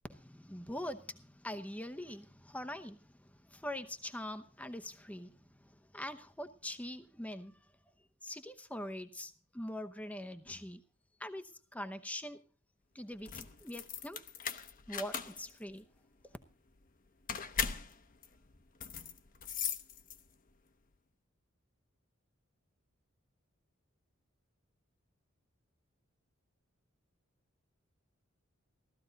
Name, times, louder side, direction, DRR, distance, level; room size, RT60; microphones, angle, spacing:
voice 1, 0.1-3.0 3.5-5.3 5.9-7.5 8.2-10.8 11.2-11.4 11.7-12.4 12.9-14.2 14.9-15.8, left 1 dB, 5° left, 0.8 m, -43 dB
sound 1, 13.1-20.5, left 7 dB, 40° left, 0.9 m, -40 dB
16.0 x 13.5 x 3.9 m
head